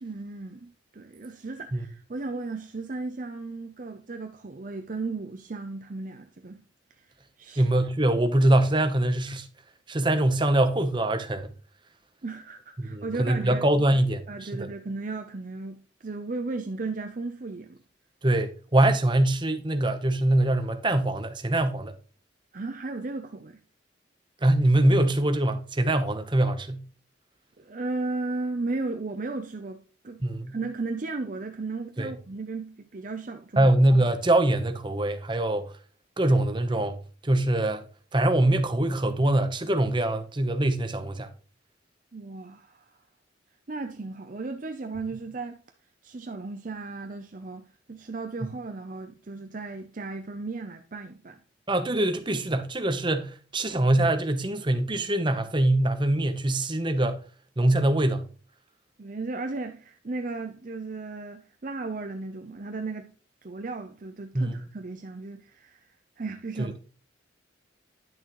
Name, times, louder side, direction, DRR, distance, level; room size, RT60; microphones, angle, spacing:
voice 1, 0.0-6.6 7.0-7.1 7.4-7.7 12.2-13.7 14.3-17.8 22.5-23.6 27.6-33.7 42.1-43.0 43.7-45.6 46.0-51.4 59.0-63.1 63.4-65.8 66.2-66.8, right 3 dB, 40° right, 0.6 m, -35 dB
voice 2, 7.6-9.5 9.9-11.5 12.8-14.7 18.2-21.9 24.4-26.8 30.2-30.6 32.0-32.1 33.6-35.7 36.2-37.0 37.2-37.8 38.1-41.3 51.7-57.2 57.6-58.3 64.3-64.6, right 1 dB, 25° right, 0.9 m, -23 dB
10.5 x 6.3 x 3.1 m
head